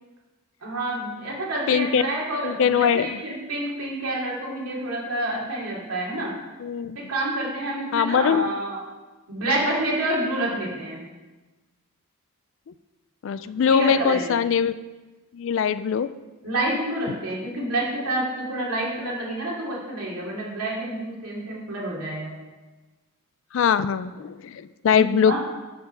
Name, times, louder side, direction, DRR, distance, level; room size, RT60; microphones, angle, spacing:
voice 1, 0.6-6.3 6.9-8.8 9.3-11.0 13.6-14.3 16.4-22.3 25.0-25.4, right 1 dB, 85° right, -4 dB, 2.6 m, -28 dB
voice 2, 1.7-2.0 2.4-3.2 6.6-7.0 7.9-8.4 13.2-14.7 15.3-16.1 23.5-25.4, left 7 dB, 60° left, 14 dB, 0.3 m, -22 dB
6.8 x 6.5 x 5.4 m, 1.2 s
head